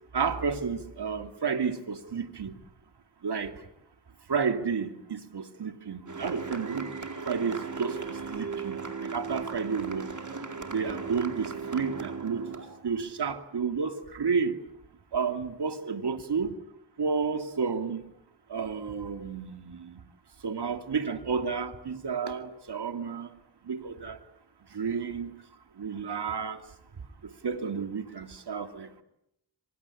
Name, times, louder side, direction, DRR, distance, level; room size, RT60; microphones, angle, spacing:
voice 1, 0.1-2.6 3.2-3.5 4.3-6.9 7.3-10.1 10.7-12.5 12.8-14.6 15.1-16.5 17.0-18.1 18.5-20.0 20.4-23.3 23.6-24.2 24.7-25.3 25.8-26.6 27.2-29.0, right 5 dB, 65° right, 2.7 m, -31 dB
sound 1, 6.1-12.8, right 5 dB, 45° right, 4.4 m, -37 dB
26.0 x 25.0 x 8.6 m
cardioid pair, 60°, 42 cm